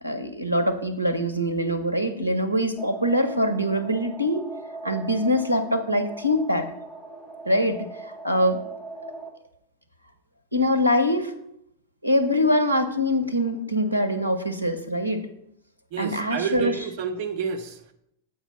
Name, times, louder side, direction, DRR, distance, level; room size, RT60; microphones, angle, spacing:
voice 1, 0.0-4.4 4.8-6.7 7.5-7.9 8.2-8.6 10.5-11.3 12.0-15.3 16.0-16.7, equal, 90° right, 7 dB, 0.7 m, -23 dB
sound 1, 2.8-9.3, right 3 dB, 20° left, 1.0 m, -39 dB
voice 2, 15.9-17.9, right 6 dB, 50° right, 8 dB, 0.7 m, -30 dB
7.0 x 5.0 x 4.1 m, 0.78 s
figure-of-eight pair, 90°, 0 cm